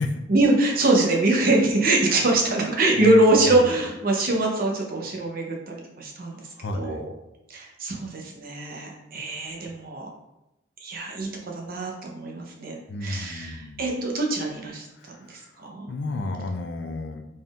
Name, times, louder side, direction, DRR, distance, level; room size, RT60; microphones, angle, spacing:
voice 1, 0.3-6.4 6.7-7.1 7.5-10.1 10.8-14.9 15.3-15.9, right 2 dB, 50° right, 0 dB, 0.7 m, -23 dB
voice 2, 2.9-3.8 6.3-7.2 12.9-13.9 14.9-15.6 15.9-17.2, left 2 dB, 65° left, 6 dB, 0.4 m, -33 dB
4.1 x 3.5 x 2.4 m, 0.91 s
head